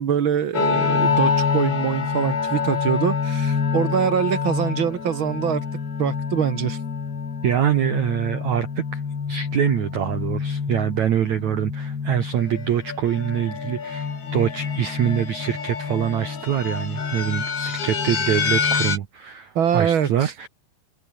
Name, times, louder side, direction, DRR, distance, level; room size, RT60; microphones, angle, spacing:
voice 1, 0.0-5.6 6.0-6.8 19.5-20.3, right 8 dB, 80° right, 1.1 m, -23 dB
sound 1, 0.5-19.0, left 5 dB, 65° left, 7.3 m, -26 dB
voice 2, 7.4-9.0 9.3-20.5, right 10 dB, 60° right, 2.1 m, -24 dB
omnidirectional pair, 4.9 m